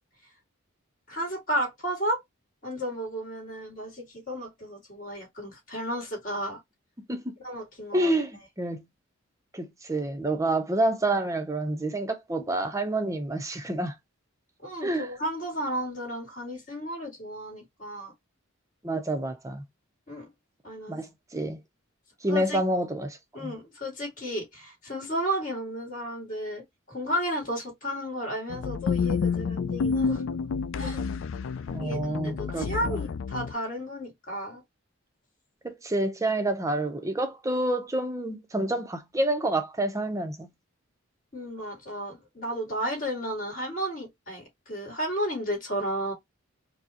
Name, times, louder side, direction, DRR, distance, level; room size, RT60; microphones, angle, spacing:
voice 1, 1.1-2.2 2.6-6.6 7.4-8.1 14.6-18.1 20.1-20.3 20.6-21.0 22.3-22.6 23.3-30.2 30.8-31.0 31.8-34.6 41.3-46.1, equal, 40° left, 2.1 m, -33 dB
voice 2, 7.9-8.8 9.5-14.0 14.8-15.1 18.8-19.7 20.9-21.6 22.2-23.5 31.7-33.0 35.6-40.5, right 1 dB, 15° right, 0.5 m, -28 dB
sound 1, 28.5-33.5, left 5 dB, 70° left, 0.4 m, -29 dB
4.6 x 2.1 x 2.8 m
head